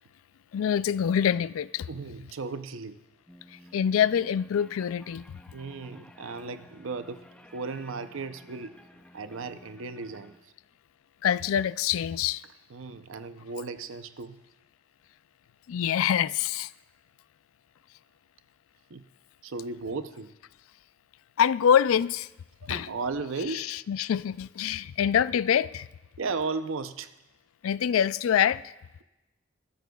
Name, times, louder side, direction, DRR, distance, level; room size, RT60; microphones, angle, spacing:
voice 1, 0.5-1.9 3.5-5.2 11.2-12.4 15.7-16.7 21.4-22.3 22.7-22.9 23.5-25.9 27.6-28.6, left 8 dB, 85° left, 0.3 m, -25 dB
voice 2, 1.9-3.0 5.5-7.3 7.5-8.8 9.1-10.5 12.7-14.4 18.9-19.0 19.4-20.3 22.6-23.7 26.2-27.1, right 4 dB, 80° right, 0.6 m, -35 dB
sound 1, 3.3-10.4, equal, 5° left, 0.5 m, -53 dB
22.0 x 13.0 x 2.3 m
head